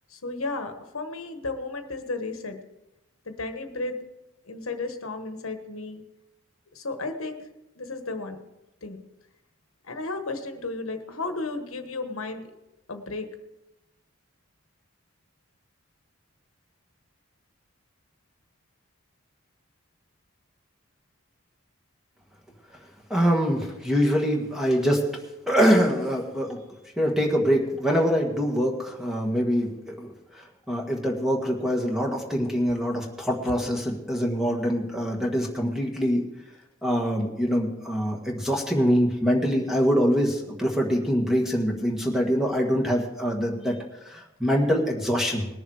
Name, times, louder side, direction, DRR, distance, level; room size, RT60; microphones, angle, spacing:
voice 1, 0.1-2.6 3.2-4.0 4.4-6.0 6.7-7.5 7.7-8.4 8.8-9.0 9.8-12.4 12.9-13.3, left 3 dB, 80° left, 7 dB, 1.3 m, -33 dB
voice 2, 23.1-25.1 25.5-26.6 27.0-36.3 36.8-43.8 44.0-45.5, equal, ahead, 0 dB, 1.5 m, -24 dB
20.0 x 7.1 x 4.8 m, 0.96 s
head